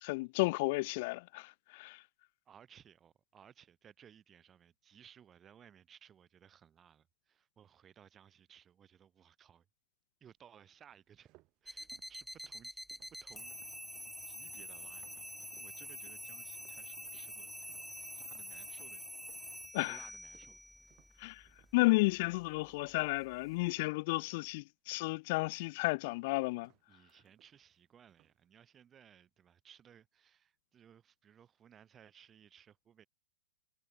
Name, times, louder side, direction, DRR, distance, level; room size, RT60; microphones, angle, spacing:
voice 1, 0.0-2.0 19.7-20.0 21.2-21.4 21.7-26.7, left 24 dB, 55° left, 0.4 m, -32 dB
voice 2, 2.5-9.7 10.2-11.3 11.6-12.8 13.2-13.6 14.3-17.5 18.1-19.1 19.4-19.5 19.8-20.6 21.2-21.3 26.9-33.1, right 8 dB, 25° right, 5.4 m, -61 dB
sound 1, 10.9-15.8 16.1-16.8 17.1-23.4 23.7-24.5 24.9-25.6 25.9-27.8 28.1-28.5, right 21 dB, 40° right, 5.3 m, -68 dB
sound 2, 11.7-23.7, equal, ahead, 2.8 m, -47 dB
hypercardioid pair, 115°, 0 cm